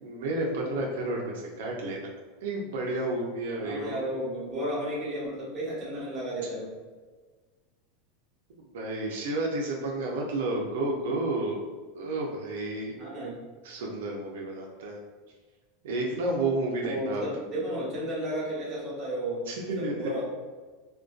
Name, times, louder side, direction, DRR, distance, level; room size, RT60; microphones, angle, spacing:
voice 1, 0.0-2.1 2.4-4.0 8.7-11.6 11.9-13.1 13.6-15.0 15.8-17.2 19.5-20.2, right 2 dB, 80° right, -1 dB, 0.4 m, -31 dB
voice 2, 3.6-6.7 13.0-13.4 16.8-20.2, equal, 25° right, -7 dB, 1.0 m, -33 dB
2.5 x 2.1 x 2.3 m, 1.4 s
supercardioid pair, 150°, 0 cm